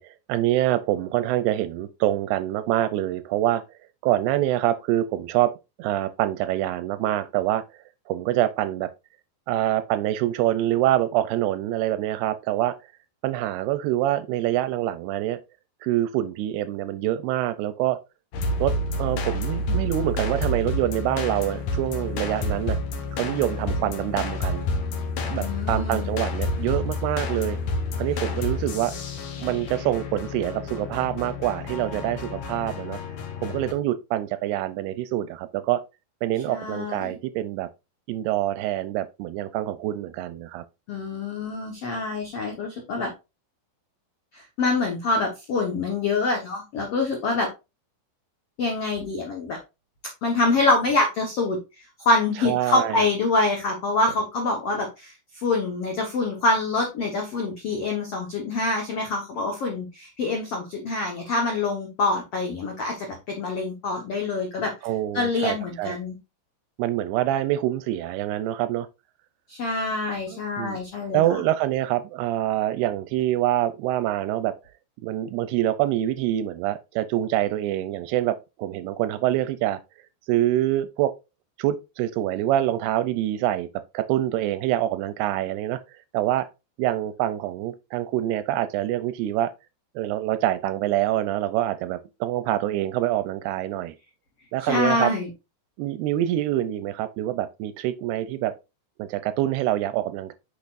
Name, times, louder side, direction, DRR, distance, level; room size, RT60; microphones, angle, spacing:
voice 1, 0.0-3.6 4.0-5.5 5.8-8.9 9.5-12.8 13.2-15.4 15.8-18.0 18.6-18.7 19.0-22.8 23.1-24.7 25.2-27.6 28.0-28.9 29.4-33.0 33.4-35.8 36.2-37.7 38.1-40.6 52.4-53.1 64.8-65.9 66.8-68.9 70.3-70.8 71.1-74.5 75.0-79.8 80.3-81.1 81.6-83.7 83.9-85.8 86.1-86.5 86.8-89.5 90.0-93.9 94.5-95.1 95.8-98.5 99.0-100.3, right 13 dB, 80° right, 2.5 m, -25 dB
sound 1, 18.3-33.7, left 2 dB, 60° left, 2.3 m, -29 dB
voice 2, 25.4-26.1 36.5-37.2 40.9-43.1 44.3-47.5 48.6-49.6 50.2-51.6 52.0-64.7 65.1-66.2 69.5-71.4 94.6-95.3, left 3 dB, 80° left, 1.3 m, -25 dB
8.6 x 6.1 x 2.5 m
omnidirectional pair, 4.8 m